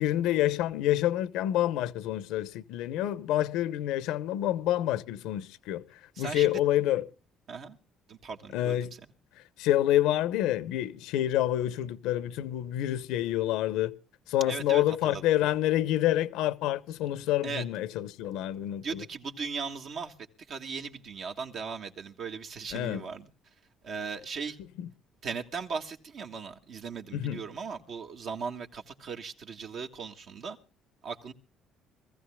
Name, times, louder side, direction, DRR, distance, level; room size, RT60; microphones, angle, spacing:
voice 1, 0.0-7.1 8.5-8.9 9.6-13.9 14.3-19.0 22.7-23.0 24.8-24.9 27.1-27.4, left 13 dB, 90° left, 0.9 m, -28 dB
voice 2, 6.2-6.6 7.5-7.8 8.1-8.9 14.5-15.2 17.4-17.6 18.8-20.1 20.5-23.3 23.8-24.6 25.2-30.6 31.0-31.3, right 5 dB, 60° right, 1.8 m, -38 dB
25.0 x 15.0 x 2.3 m
cardioid pair, 105°, 0 cm